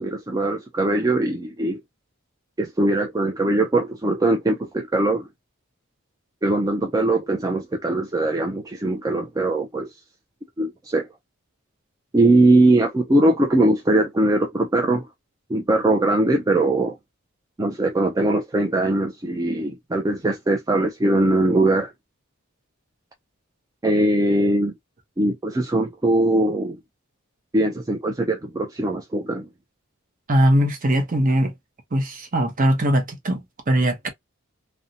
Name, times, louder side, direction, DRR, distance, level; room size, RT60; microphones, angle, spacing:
voice 1, 0.0-1.8 2.6-5.3 6.4-9.9 10.6-11.1 12.1-15.1 15.5-17.0 17.6-21.9 23.8-24.7 25.2-26.8 27.5-29.5, right 2 dB, 15° right, 0.4 m, -21 dB
voice 2, 30.3-31.5 31.9-34.1, equal, 40° right, 0.8 m, -20 dB
2.6 x 2.1 x 2.7 m
head